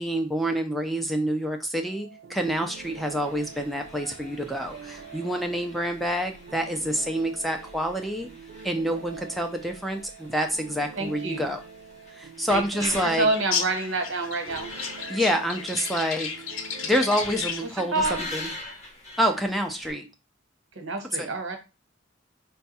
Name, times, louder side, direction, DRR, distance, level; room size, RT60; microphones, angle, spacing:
voice 1, 0.0-8.3 8.6-11.6 12.1-13.3 15.1-16.3 16.8-17.9 18.3-18.5 19.2-20.1 21.2-21.3, equal, ahead, 3 dB, 0.4 m, -27 dB
sound 1, 1.8-17.4, right 6 dB, 60° right, 0.4 m, -46 dB
sound 2, 2.4-19.9, left 1 dB, 35° left, 1.2 m, -44 dB
voice 2, 11.0-11.5 12.5-14.7 17.9-18.2 20.7-21.6, right 2 dB, 80° right, 4 dB, 1.1 m, -28 dB
sound 3, 13.3-17.8, left 6 dB, 85° left, 0.6 m, -33 dB
4.5 x 2.3 x 4.0 m, 0.28 s
head